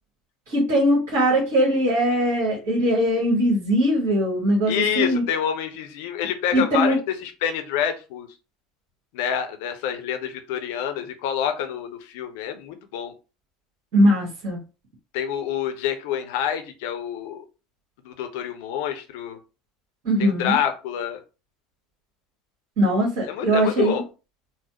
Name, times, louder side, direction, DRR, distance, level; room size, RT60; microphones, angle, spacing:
voice 1, 0.5-5.2 6.5-7.0 13.9-14.6 20.0-20.5 22.8-24.0, equal, 55° right, -5 dB, 1.6 m, -21 dB
voice 2, 4.7-8.3 9.1-13.1 15.1-17.4 18.0-19.4 20.2-21.2 23.2-24.0, left 9 dB, 60° left, 7 dB, 0.6 m, -27 dB
4.0 x 2.0 x 2.9 m, 0.31 s
figure-of-eight pair, 70°, 0 cm